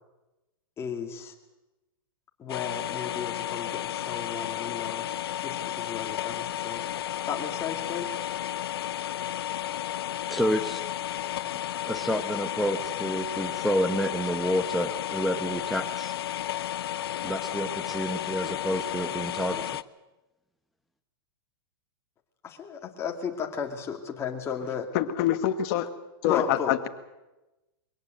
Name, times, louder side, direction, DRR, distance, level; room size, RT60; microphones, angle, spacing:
voice 1, 0.8-1.3 2.4-8.1 22.4-24.9 26.2-26.7, left 7 dB, 20° left, 2 dB, 2.6 m, -34 dB
sound 1, 2.5-19.8, left 12 dB, 80° left, 0.7 m, -33 dB
voice 2, 10.3-10.8 11.8-16.2 17.2-19.7, equal, ahead, 3 dB, 1.0 m, -29 dB
voice 3, 24.9-25.9 26.2-26.9, left 11 dB, 45° left, 7 dB, 1.6 m, -25 dB
23.0 x 18.0 x 7.9 m, 1.0 s
hypercardioid pair, 145°, 13 cm